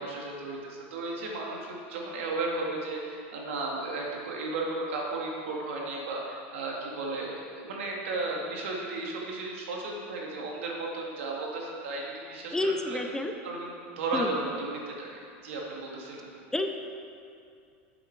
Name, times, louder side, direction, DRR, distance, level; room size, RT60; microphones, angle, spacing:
voice 1, 0.0-13.0 13.4-16.3, right 2 dB, 80° right, -2 dB, 2.3 m, -34 dB
voice 2, 12.5-13.3 14.1-14.3 16.5-16.7, left 2 dB, 10° left, 5 dB, 0.6 m, -29 dB
9.9 x 7.7 x 4.7 m, 2.4 s
supercardioid pair, 130°, 7 cm